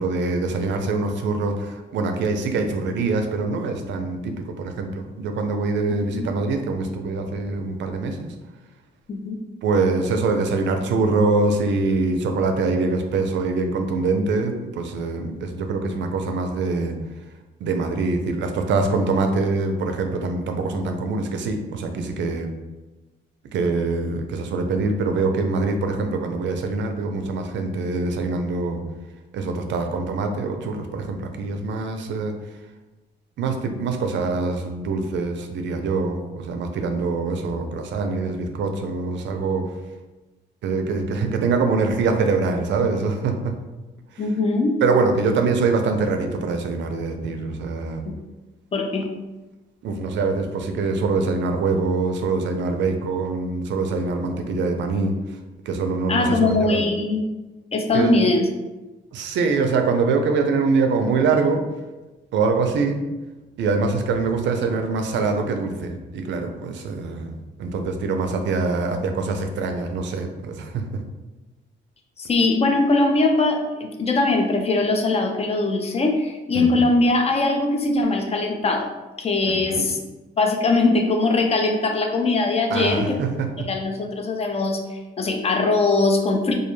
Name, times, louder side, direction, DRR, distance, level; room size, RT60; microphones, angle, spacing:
voice 1, 0.0-8.3 9.6-17.0 17.6-22.5 23.5-28.8 29.3-32.3 33.4-39.8 40.6-43.5 44.1-44.2 44.8-48.0 49.8-55.4 55.7-56.8 57.9-58.1 59.1-61.6 62.3-63.0 63.6-71.0 76.5-76.8 79.5-79.9 82.7-83.7, right 3 dB, 65° right, 5 dB, 0.4 m, -24 dB
voice 2, 44.2-44.8 48.1-48.2 48.7-49.1 56.1-57.2 57.7-58.5 72.2-78.9 79.2-80.0 80.4-83.2 83.6-86.5, left 3 dB, 30° left, 4 dB, 0.3 m, -21 dB
2.2 x 2.1 x 3.0 m, 1.1 s
cardioid pair, 90°, 20 cm